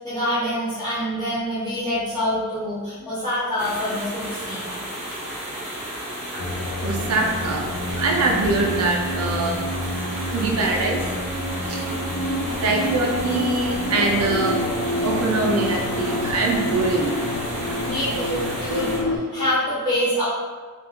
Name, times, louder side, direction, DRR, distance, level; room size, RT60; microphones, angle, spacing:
voice 1, 0.0-4.7 17.8-20.2, equal, 20° left, -15 dB, 0.7 m, -26 dB
sound 1, 3.6-19.0, equal, 30° right, 0.9 m, -33 dB
sound 2, 6.4-19.2, left 1 dB, 70° left, 0.3 m, -28 dB
voice 2, 6.8-9.7 10.3-11.1 11.7-11.8 12.6-14.6 15.0-17.1, right 3 dB, 80° right, 0 dB, 0.4 m, -23 dB
2.3 x 2.1 x 3.5 m, 1.4 s
head